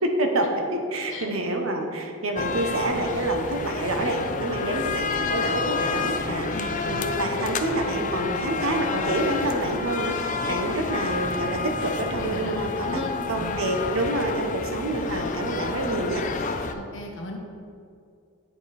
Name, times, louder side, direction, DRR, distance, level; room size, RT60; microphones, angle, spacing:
voice 1, 0.0-13.0 13.3-16.5, right 1 dB, 80° right, 3 dB, 0.9 m, -27 dB
sound 1, 2.4-16.7, left 4 dB, 40° left, 0.4 m, -29 dB
voice 2, 12.2-12.5 12.8-13.7 16.7-17.4, left 2 dB, 65° left, 1 dB, 1.2 m, -36 dB
8.9 x 5.0 x 4.3 m, 2.3 s
head